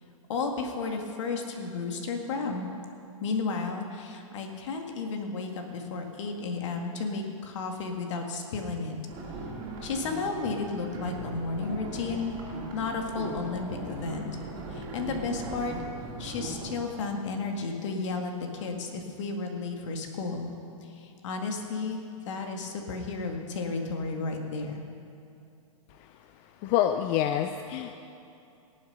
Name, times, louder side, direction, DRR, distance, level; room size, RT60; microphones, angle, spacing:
voice 1, 0.3-2.7 3.2-9.0 9.8-12.3 12.7-14.3 14.7-15.7 16.2-20.5 20.8-24.8, left 4 dB, 60° left, 3 dB, 1.9 m, -33 dB
sound 1, 9.1-16.8, right 2 dB, 30° right, 2.8 m, -39 dB
voice 2, 26.6-28.0, left 11 dB, 35° left, 7 dB, 0.5 m, -26 dB
17.5 x 7.4 x 5.4 m, 2.7 s
hypercardioid pair, 130°, 17 cm